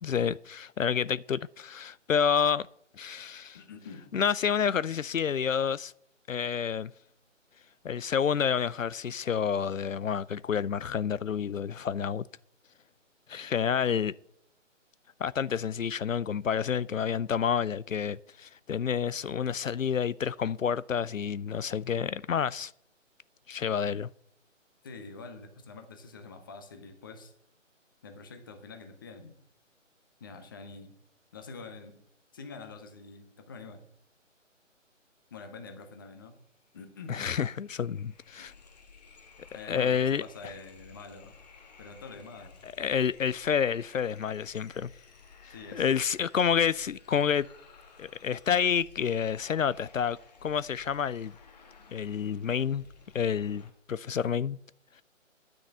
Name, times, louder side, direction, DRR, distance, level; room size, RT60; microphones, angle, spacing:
voice 1, 0.0-2.6 3.0-3.6 4.1-5.9 6.3-6.9 7.8-12.2 13.3-14.1 15.2-22.7 23.5-24.1 37.1-38.5 39.7-40.5 42.6-44.9 45.4-47.5 48.0-51.3 51.9-52.8 53.1-53.6 53.9-54.6, left 7 dB, 80° left, 0.5 m, -29 dB
voice 2, 3.5-4.1 24.8-27.3 28.0-29.4 30.2-31.0 31.3-32.0 32.3-33.8 35.3-36.4 36.7-37.2 38.4-38.5 39.5-41.3 41.8-42.6 45.5-46.0, left 4 dB, 15° left, 0.9 m, -46 dB
sound 1, 36.7-36.8 37.0-53.7, left 5 dB, 30° left, 1.6 m, -55 dB
10.5 x 6.4 x 8.5 m
figure-of-eight pair, 150°, 39 cm